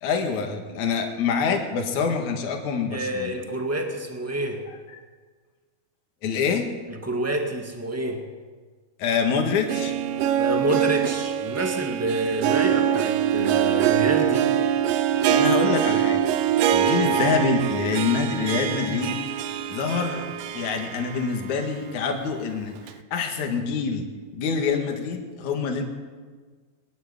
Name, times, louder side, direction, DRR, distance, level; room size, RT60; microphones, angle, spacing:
voice 1, 0.0-3.4 4.7-4.8 6.2-6.7 9.0-9.9 15.3-16.3 16.7-20.2 20.5-24.1 24.3-25.8, left 5 dB, 55° left, 3 dB, 3.1 m, -26 dB
voice 2, 2.9-4.6 7.0-8.2 10.4-14.5, right 1 dB, 10° right, 3 dB, 0.9 m, -28 dB
Harp, 9.4-21.6 21.9-22.0 22.9-23.0, right 10 dB, 75° right, 2.2 m, -24 dB
22.5 x 12.0 x 9.7 m, 1.5 s
omnidirectional pair, 4.3 m